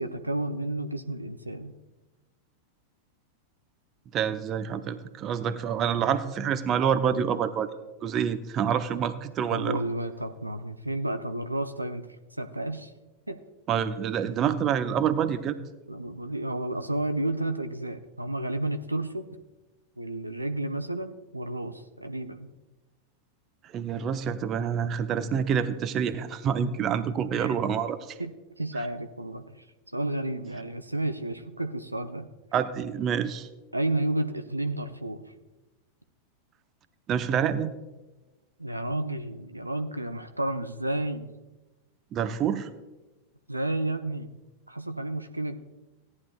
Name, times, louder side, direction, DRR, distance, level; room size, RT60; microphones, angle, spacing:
voice 1, 0.0-1.7 9.5-12.0 12.4-12.9 13.3-13.4 15.9-19.3 20.0-22.5 27.4-27.5 28.2-28.3 28.6-32.3 33.7-35.3 38.6-41.3 43.5-44.3 44.7-45.6, right 1 dB, 85° right, 8 dB, 0.5 m, -31 dB
voice 2, 4.1-7.7 8.0-9.8 13.7-15.6 23.7-28.2 32.5-33.5 37.1-37.7 42.1-42.7, right 8 dB, 30° right, 12 dB, 0.6 m, -27 dB
17.0 x 10.5 x 2.3 m, 1.1 s
figure-of-eight pair, 90°, 0 cm